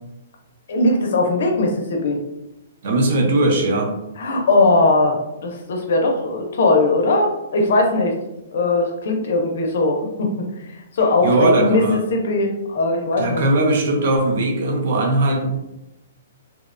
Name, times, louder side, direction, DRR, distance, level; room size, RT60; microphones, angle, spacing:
voice 1, 0.7-2.2 4.2-8.2 8.5-10.3 10.6-13.4, left 2 dB, 55° left, 2 dB, 0.4 m, -19 dB
voice 2, 2.8-3.9 11.2-12.0 13.1-15.5, right 2 dB, 50° right, 2 dB, 0.5 m, -19 dB
2.6 x 2.1 x 2.4 m, 0.90 s
hypercardioid pair, 175°, 0 cm